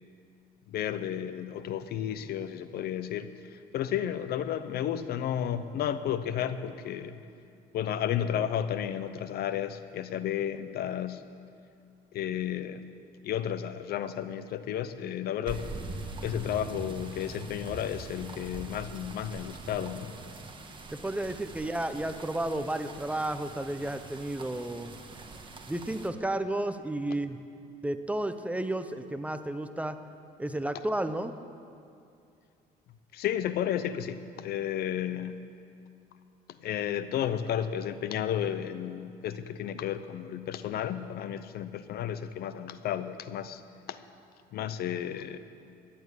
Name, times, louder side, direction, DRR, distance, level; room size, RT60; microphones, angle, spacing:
voice 1, 0.7-7.2 7.7-11.2 12.1-12.9 13.2-15.7 16.2-20.1 33.1-35.4 36.6-43.6 43.9-44.0 44.5-45.4, left 10 dB, 70° left, 12 dB, 0.7 m, -32 dB
sound 1, 15.5-26.1, right 2 dB, 30° right, 1.5 m, -43 dB
voice 2, 21.0-24.9 25.7-27.4 27.8-30.0 30.4-31.3, right 1 dB, 10° right, 10 dB, 0.7 m, -32 dB
14.0 x 10.5 x 8.4 m, 2.4 s
cardioid pair, 110°, 17 cm